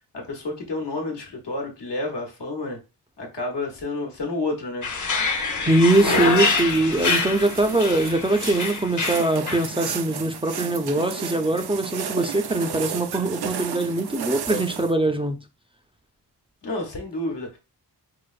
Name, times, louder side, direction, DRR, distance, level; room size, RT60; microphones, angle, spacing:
voice 1, 0.1-2.8 3.2-4.9 16.6-17.6, left 2 dB, 80° left, 1.1 m, -30 dB
sound 1, 4.8-9.7, left 4 dB, 45° left, 0.8 m, -25 dB
voice 2, 5.7-15.4, right 2 dB, 15° right, 0.4 m, -22 dB
sound 2, 5.9-14.9, right 7 dB, 65° right, 0.5 m, -33 dB
4.7 x 2.0 x 2.4 m
cardioid pair, 65°, 41 cm